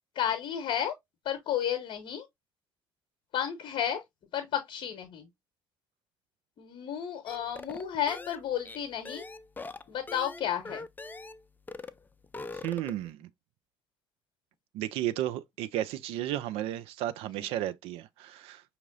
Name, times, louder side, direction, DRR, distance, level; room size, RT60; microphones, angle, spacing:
voice 1, 0.1-1.0 1.2-2.3 3.3-4.0 4.3-5.3 6.6-9.2 9.9-10.9, left 9 dB, 55° left, 0.8 m, -32 dB
sound 1, 7.3-11.4 11.7-12.0 12.2-13.1, left 3 dB, 15° left, 0.4 m, -42 dB
voice 2, 12.6-13.3 14.7-18.6, right 13 dB, 60° right, 0.4 m, -33 dB
5.5 x 2.9 x 2.5 m
figure-of-eight pair, 45°, 11 cm